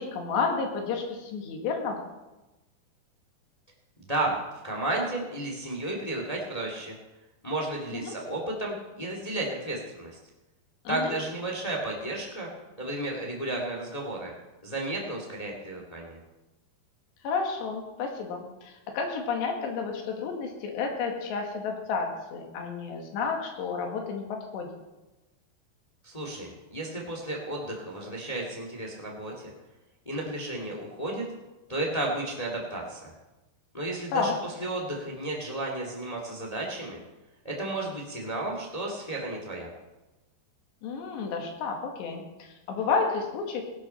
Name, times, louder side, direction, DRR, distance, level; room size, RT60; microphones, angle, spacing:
voice 1, 0.0-2.0 7.9-8.1 10.9-11.2 17.2-24.7 34.1-34.3 40.8-43.6, left 5 dB, 80° left, 2 dB, 4.0 m, -31 dB
voice 2, 4.6-7.0 7.4-10.2 10.9-12.5 12.8-14.3 14.6-16.2 26.0-29.3 30.0-31.2 31.7-33.1 33.7-37.0 37.4-39.7, right 2 dB, 35° left, -1 dB, 0.6 m, -33 dB
17.5 x 11.5 x 4.4 m, 1.1 s
omnidirectional pair, 5.0 m